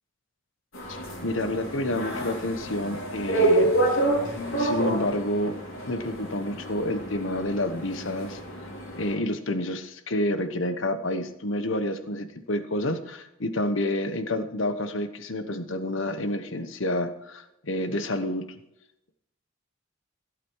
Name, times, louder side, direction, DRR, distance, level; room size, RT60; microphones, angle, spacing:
sound 1, 0.7-9.1, right 2 dB, 90° left, 5.3 m, -28 dB
voice 1, 0.9-4.0 4.6-5.5 5.8-8.4 8.9-18.5, left 1 dB, 70° left, 9 dB, 1.2 m, -29 dB
15.5 x 8.6 x 4.8 m, 0.85 s
head